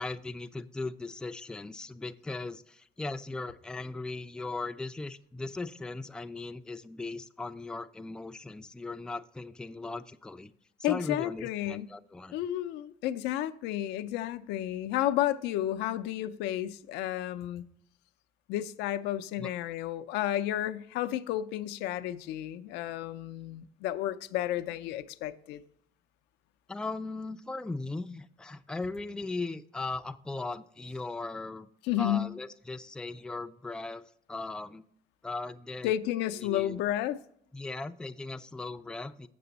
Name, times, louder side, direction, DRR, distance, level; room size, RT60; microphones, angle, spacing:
voice 1, 0.0-10.5 10.9-12.4 19.4-19.5 26.7-31.7 32.0-34.8 35.2-35.9 36.4-36.8 37.5-39.3, left 3 dB, 5° left, 0.3 m, -38 dB
voice 2, 10.8-11.9 12.3-17.6 18.5-25.6 31.9-32.3 35.8-37.2, left 13 dB, 90° left, 0.4 m, -32 dB
6.8 x 6.8 x 4.0 m
cardioid pair, 110°, 17 cm